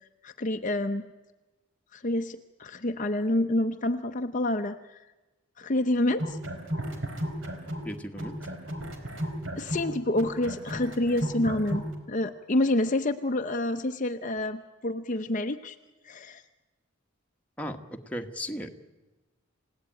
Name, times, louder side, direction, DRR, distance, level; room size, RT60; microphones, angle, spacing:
voice 1, 0.2-1.1 1.9-5.0 5.6-6.4 9.6-15.7 16.0-16.4, left 1 dB, 35° left, 6 dB, 0.8 m, -28 dB
sound 1, 6.1-7.9 8.2-11.9, equal, 65° right, 4.1 m, -34 dB
voice 2, 7.8-8.4 17.6-18.7, equal, 5° left, 3 dB, 1.4 m, -36 dB
29.0 x 17.0 x 9.1 m, 1.1 s
head